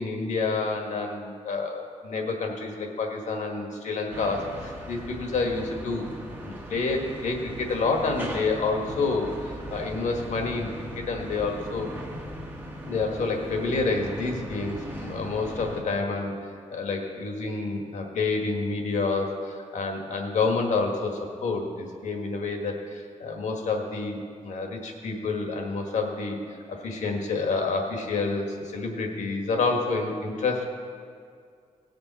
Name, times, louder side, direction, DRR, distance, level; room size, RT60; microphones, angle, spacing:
voice 1, 0.0-6.1 6.4-11.9 12.9-16.4 16.7-26.4 26.7-30.6, left 3 dB, 70° left, 2 dB, 1.6 m, -28 dB
sound 1, 4.1-15.8, right 1 dB, 15° right, 1.1 m, -39 dB
18.5 x 6.8 x 4.2 m, 2.2 s
wide cardioid pair, 175°, 13 cm